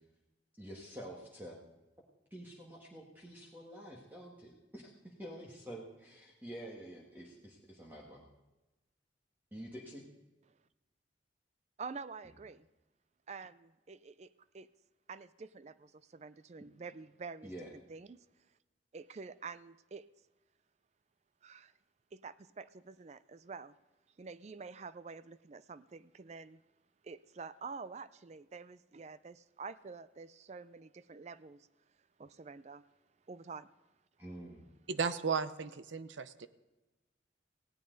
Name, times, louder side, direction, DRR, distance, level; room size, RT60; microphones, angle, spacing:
voice 1, 0.6-1.6 2.3-8.2 9.5-10.0 17.4-17.7 34.2-34.6, right 1 dB, 10° right, -3 dB, 1.7 m, -48 dB
voice 2, 11.8-12.7 13.3-14.3 14.5-14.7 15.1-17.5 17.9-18.2 18.9-20.0 21.4-21.7 22.1-23.7 24.2-26.6 27.0-31.7 32.2-32.8 33.3-33.7, right 4 dB, 35° right, 16 dB, 0.4 m, -48 dB
voice 3, 34.9-36.5, right 5 dB, 80° right, 14 dB, 0.7 m, -35 dB
18.5 x 16.5 x 4.0 m, 1.1 s
head